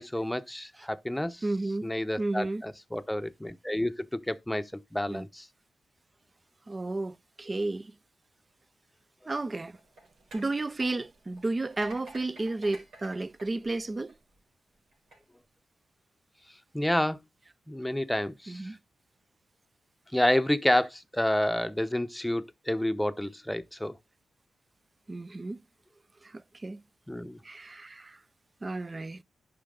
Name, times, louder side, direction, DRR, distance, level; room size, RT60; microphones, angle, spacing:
voice 1, 0.0-1.4 1.8-5.5 16.7-17.2 17.7-18.7 20.1-24.0 27.1-27.4, left 1 dB, 5° left, 0.7 m, -29 dB
voice 2, 1.4-1.9 2.2-2.6 5.1-5.3 6.7-7.9 9.3-9.8 10.3-14.2 18.5-18.8 25.1-25.6 26.2-26.8 27.4-28.2 28.6-29.2, right 2 dB, 30° right, 0.4 m, -32 dB
sound 1, 9.5-14.4 14.9-15.2, right 1 dB, 85° right, 4.7 m, -51 dB
10.0 x 5.7 x 3.8 m
cardioid pair, 65°, 0 cm